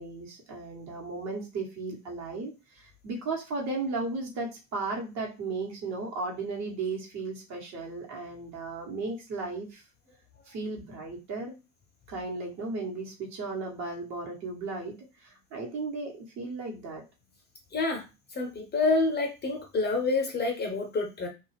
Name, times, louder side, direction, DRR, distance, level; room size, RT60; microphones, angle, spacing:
voice 1, 0.0-9.8 10.5-11.5 12.1-15.0 15.2-17.0, right 3 dB, 40° right, 0 dB, 1.2 m, -35 dB
voice 2, 17.7-18.0 18.3-21.3, left 3 dB, 25° left, 2 dB, 0.7 m, -27 dB
2.4 x 2.3 x 3.2 m, 0.28 s
figure-of-eight pair, 75°, 40 cm